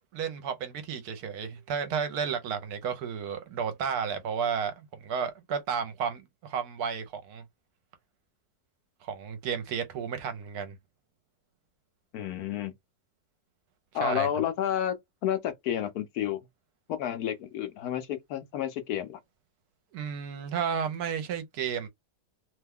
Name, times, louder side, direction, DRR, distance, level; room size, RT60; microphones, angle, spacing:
voice 1, 0.1-7.4 9.0-10.8 14.0-14.3 19.9-21.9, right 7 dB, 70° right, 1.1 m, -32 dB
voice 2, 12.1-12.7 13.9-15.0 15.2-16.4 16.9-19.2, left 11 dB, 70° left, 1.0 m, -30 dB
2.9 x 2.2 x 3.4 m
omnidirectional pair, 1.8 m